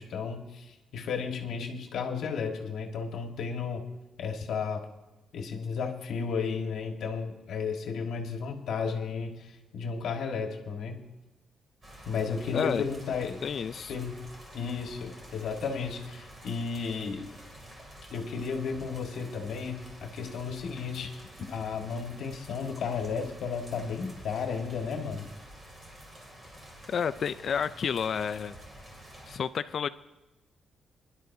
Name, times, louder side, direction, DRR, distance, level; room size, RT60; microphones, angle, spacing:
voice 1, 0.0-3.9 4.2-4.8 5.3-11.1 12.0-13.4 13.9-14.3 14.5-17.3 18.1-25.3, left 5 dB, 70° left, 4 dB, 1.5 m, -33 dB
sound 1, 11.8-29.4, right 1 dB, 20° right, 2.6 m, -49 dB
voice 2, 12.5-12.8 13.4-14.0 26.9-28.5 29.3-29.9, left 7 dB, 45° left, 14 dB, 0.4 m, -30 dB
22.0 x 11.0 x 2.7 m, 1.1 s
wide cardioid pair, 175°, 0 cm